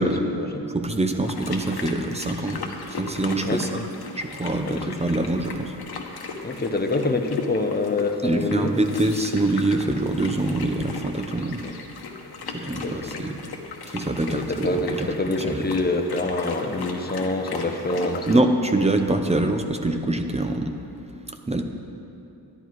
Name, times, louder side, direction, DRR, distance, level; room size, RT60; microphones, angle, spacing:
voice 1, 0.7-2.6 2.9-3.8 4.2-5.7 8.2-11.6 12.5-13.4 13.9-15.1 15.5-15.6 18.3-20.8 21.5-21.6, right 2 dB, 15° right, 5 dB, 0.7 m, -24 dB
sound 1, 1.2-18.3, left 4 dB, 70° left, 1.1 m, -37 dB
voice 2, 6.4-8.7 11.6-11.7 12.8-13.3 14.3-18.3, left 2 dB, 25° left, 5 dB, 0.8 m, -26 dB
12.0 x 10.5 x 4.7 m, 2.8 s
wide cardioid pair, 125°, 40 cm